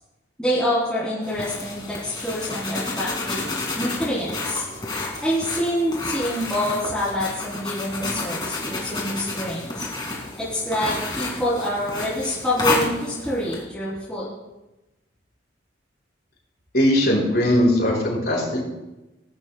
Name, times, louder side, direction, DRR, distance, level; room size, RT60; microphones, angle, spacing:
voice 1, 0.4-3.5 3.7-4.6 5.2-9.9 10.4-14.3, equal, 5° left, -11 dB, 3.1 m, -26 dB
sound 1, 1.2-13.6, left 3 dB, 20° left, 2.2 m, -30 dB
voice 2, 16.7-18.6, left 1 dB, 50° left, -4 dB, 5.0 m, -19 dB
19.5 x 11.5 x 2.3 m, 1.0 s
head